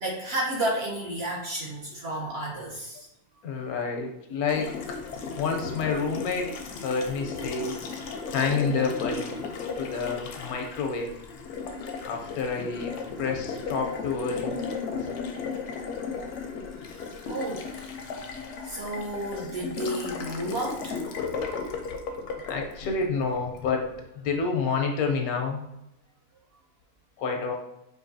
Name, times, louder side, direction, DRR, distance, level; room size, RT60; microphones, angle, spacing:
voice 1, 0.0-3.1 17.3-17.7 18.6-21.0, right 1 dB, 60° right, -2 dB, 0.7 m, -31 dB
voice 2, 3.4-4.9 5.4-7.7 8.3-9.3 9.8-11.1 12.0-12.9 13.2-14.6 15.0-15.1 22.3-23.9 24.2-25.7 27.2-27.6, left 4 dB, 80° left, 2 dB, 1.1 m, -29 dB
Water tap faucet, 4.5-23.6, left 5 dB, 65° left, 0.8 m, -35 dB
4.6 x 2.6 x 2.6 m, 0.85 s
omnidirectional pair, 1.6 m